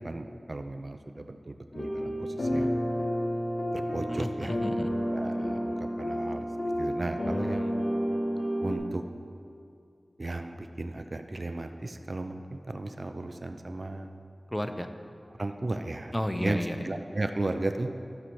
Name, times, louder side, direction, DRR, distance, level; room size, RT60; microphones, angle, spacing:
voice 1, 0.0-2.8 3.7-4.6 5.1-6.5 6.8-7.7 8.6-9.0 10.2-14.1 15.4-16.1 16.4-17.9, right 2 dB, 55° right, 7 dB, 0.5 m, -35 dB
sound 1, 1.7-8.8, equal, 70° left, 1.4 m, -30 dB
voice 2, 4.1-4.9 14.5-14.9 16.1-16.8, equal, 10° left, 7 dB, 0.7 m, -32 dB
13.0 x 5.7 x 4.7 m, 2.4 s
cardioid pair, 40°, 0 cm